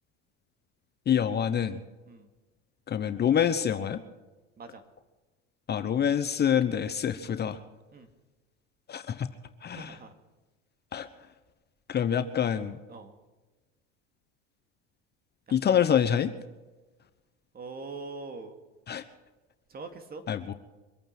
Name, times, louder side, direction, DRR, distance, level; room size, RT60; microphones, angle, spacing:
voice 1, 1.1-1.8 2.9-4.0 5.7-7.6 8.9-9.3 9.6-9.9 10.9-11.1 11.9-12.8 15.5-16.3 18.9-19.0 20.3-20.5, left 8 dB, 35° left, 10 dB, 1.0 m, -26 dB
voice 2, 9.7-10.1 12.9-13.1 15.6-15.8 17.5-18.6 19.7-20.2, right 3 dB, 30° right, 7 dB, 2.4 m, -42 dB
24.5 x 8.9 x 6.0 m, 1.2 s
supercardioid pair, 105°, 31 cm